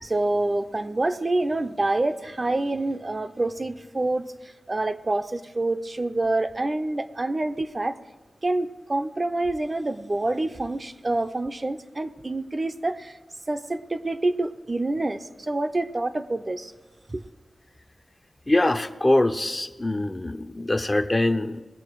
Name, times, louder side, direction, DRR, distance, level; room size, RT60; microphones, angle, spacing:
voice 1, 0.0-8.0 8.4-13.1 13.5-16.7 17.1-17.2, right 2 dB, 30° right, 9 dB, 0.5 m, -27 dB
voice 2, 18.5-21.6, left 1 dB, 25° left, 9 dB, 0.5 m, -23 dB
20.5 x 7.1 x 4.5 m, 1.3 s
wide cardioid pair, 115°, 0 cm